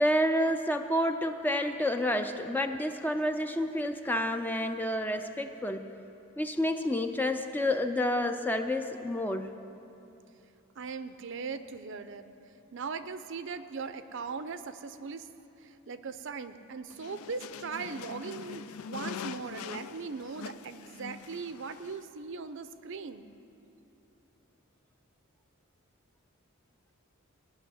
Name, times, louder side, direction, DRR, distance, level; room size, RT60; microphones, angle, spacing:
voice 1, 0.0-5.9 6.4-9.5, left 1 dB, 10° left, 7 dB, 0.5 m, -29 dB
voice 2, 10.8-12.3 12.7-15.3 15.6-23.3, right 5 dB, 60° right, 11 dB, 0.5 m, -39 dB
sound 1, 16.9-22.0, left 6 dB, 80° left, 0.4 m, -43 dB
17.5 x 6.3 x 10.0 m, 2.9 s
head